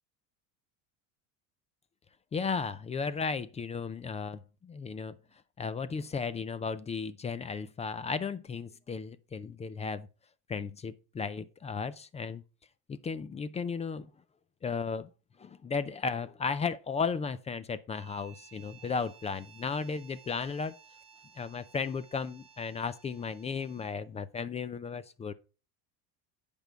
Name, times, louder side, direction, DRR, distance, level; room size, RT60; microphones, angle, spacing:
voice 1, 2.3-5.2 5.6-10.1 10.5-12.4 12.9-14.1 14.6-15.1 15.4-20.7 21.4-25.3, left 5 dB, 15° left, 0.3 m, -35 dB
sound 1, 17.9-24.1, right 7 dB, 15° right, 2.7 m, -57 dB
10.0 x 5.3 x 4.5 m
cardioid pair, 140°, 41 cm